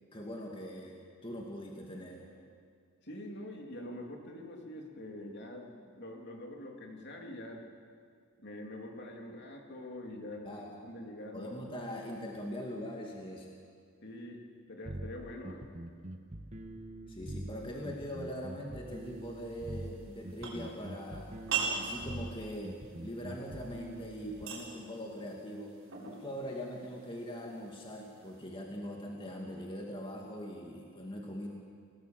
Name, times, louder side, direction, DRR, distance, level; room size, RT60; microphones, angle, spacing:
voice 1, 0.1-2.2 10.4-10.7 11.3-13.5 17.1-21.3 21.7-25.7 26.1-31.5, equal, 25° left, -1 dB, 2.3 m, -42 dB
voice 2, 3.0-7.6 8.4-10.5 10.8-11.5 14.0-15.7, left 1 dB, 50° left, 1 dB, 3.4 m, -45 dB
sound 1, 14.8-24.4, right 1 dB, 35° right, 1.5 m, -44 dB
sound 2, 18.9-28.4, right 6 dB, 60° right, 6.4 m, -43 dB
29.5 x 18.0 x 7.7 m, 2.1 s
head